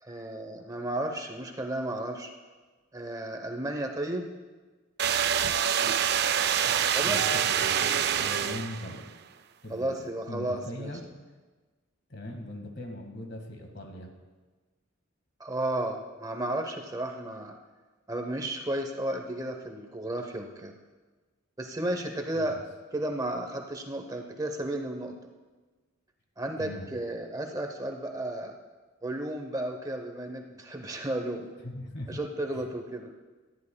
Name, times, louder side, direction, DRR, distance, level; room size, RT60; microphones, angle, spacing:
voice 1, 0.0-2.3 2.9-4.3 6.9-7.2 9.7-10.9 15.4-17.5 18.1-20.7 21.6-22.6 22.9-25.1 26.4-28.5 29.0-31.5 32.1-33.1, right 1 dB, 20° right, 3 dB, 0.8 m, -33 dB
sound 1, 5.0-9.0, right 8 dB, 50° right, 0.4 m, -26 dB
voice 2, 6.7-9.0 9.6-10.0 10.3-11.0 12.1-14.1 22.3-22.6 26.6-26.9 31.6-32.2 32.5-32.7, left 1 dB, 55° left, 3 dB, 1.8 m, -40 dB
18.5 x 13.0 x 2.3 m, 1.3 s
head